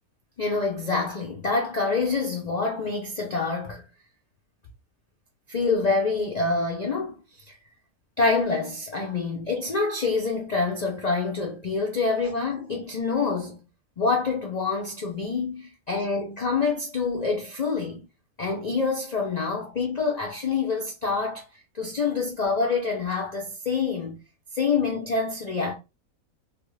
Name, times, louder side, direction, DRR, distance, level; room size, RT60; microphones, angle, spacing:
voice 1, 0.4-3.9 5.5-7.2 7.5-7.6 8.2-13.7 14.0-18.0 18.4-21.4 21.7-24.2 24.5-25.7, left 4 dB, 75° left, 0.3 m, -26 dB
3.2 x 2.3 x 3.2 m
omnidirectional pair, 1.6 m